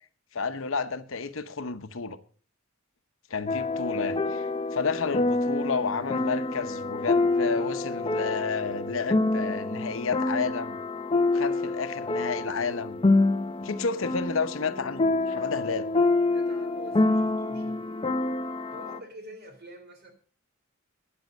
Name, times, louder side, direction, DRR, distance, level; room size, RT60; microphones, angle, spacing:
voice 1, 0.3-2.2 3.3-10.8 11.3-13.1 13.6-15.9, left 5 dB, 75° left, 0.9 m, -31 dB
sound 1, 3.5-19.0, left 2 dB, 25° left, 0.6 m, -27 dB
voice 2, 16.2-17.8 18.7-20.1, equal, 50° right, 3.2 m, -46 dB
12.5 x 9.6 x 5.2 m
head